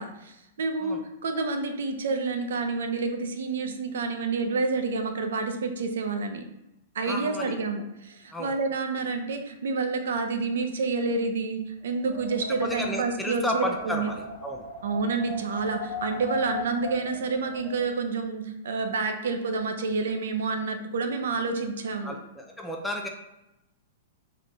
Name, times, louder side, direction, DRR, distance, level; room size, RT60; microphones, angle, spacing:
voice 1, 0.0-6.4 6.9-14.1 14.8-22.2, right 4 dB, 80° right, 6 dB, 0.7 m, -29 dB
voice 2, 7.0-7.5 8.3-8.6 12.6-14.7 22.0-23.1, left 1 dB, 5° left, 1 dB, 0.5 m, -32 dB
Wind, 11.9-17.9, left 4 dB, 50° left, 0.9 m, -39 dB
3.8 x 3.7 x 3.3 m, 0.90 s
hypercardioid pair, 145°, 0 cm